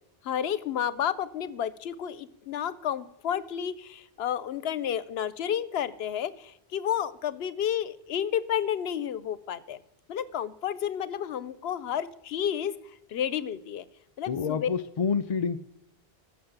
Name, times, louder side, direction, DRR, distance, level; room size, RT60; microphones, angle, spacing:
voice 1, 0.2-9.8 10.1-12.7 13.1-13.8 14.2-14.7, left 9 dB, 80° left, 16 dB, 0.9 m, -31 dB
voice 2, 14.2-15.6, left 6 dB, 50° left, 9 dB, 0.4 m, -28 dB
14.5 x 6.7 x 6.7 m, 0.81 s
omnidirectional pair, 1.0 m